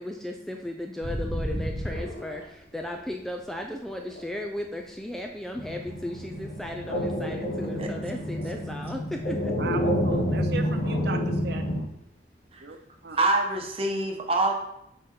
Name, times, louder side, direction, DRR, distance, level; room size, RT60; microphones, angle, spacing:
voice 1, 0.0-9.6, left 1 dB, ahead, 2 dB, 0.4 m, -35 dB
sound 1, 1.0-4.3 4.7-6.9 7.2-7.6 7.9-9.8 10.1-10.2 10.5-10.9 11.3-11.4 13.6-13.7, equal, 40° left, 1.2 m, -35 dB
sound 2, 1.8-3.2 3.5-5.8 6.6-7.1 7.6-7.7 8.4-8.8 9.1-9.2 9.5-10.6, left 1 dB, 85° left, 1.8 m, -45 dB
sound 3, 5.6-11.8, equal, 70° left, 1.5 m, -28 dB
voice 2, 9.6-11.6 12.6-12.8 13.0-13.2, right 4 dB, 60° right, 6 dB, 0.6 m, -36 dB
voice 3, 13.2-14.5, right 2 dB, 30° right, 2 dB, 1.0 m, -25 dB
6.1 x 5.1 x 4.3 m, 0.78 s
head